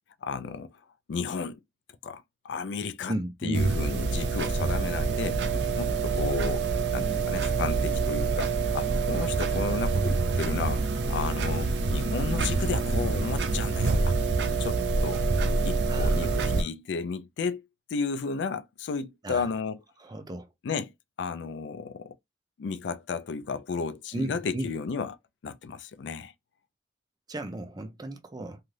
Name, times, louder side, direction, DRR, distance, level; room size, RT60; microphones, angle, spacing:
voice 1, 0.2-0.7 1.1-1.6 2.0-3.1 3.4-5.4 5.8-6.7 6.9-15.2 15.7-17.6 17.9-19.8 20.6-20.9 21.2-22.2 22.6-25.2 25.4-26.3, left 5 dB, 85° left, 0.4 m, -33 dB
voice 2, 3.1-3.7 15.9-16.7 19.2-19.5 20.0-20.5 24.1-24.7 27.3-28.6, right 1 dB, 20° right, 0.5 m, -35 dB
sound 1, 3.5-16.6, right 4 dB, 75° right, 0.5 m, -26 dB
2.5 x 2.4 x 3.2 m
head